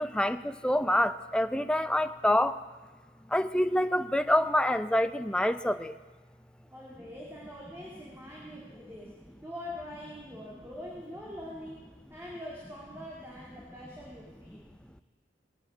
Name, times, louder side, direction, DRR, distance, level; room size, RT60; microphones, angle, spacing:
voice 1, 0.0-2.6 3.3-6.0, left 1 dB, 5° left, 10 dB, 0.5 m, -26 dB
voice 2, 6.6-9.1 9.4-14.7, left 1 dB, 15° right, -4 dB, 2.4 m, -44 dB
19.0 x 9.1 x 8.1 m, 1.3 s
head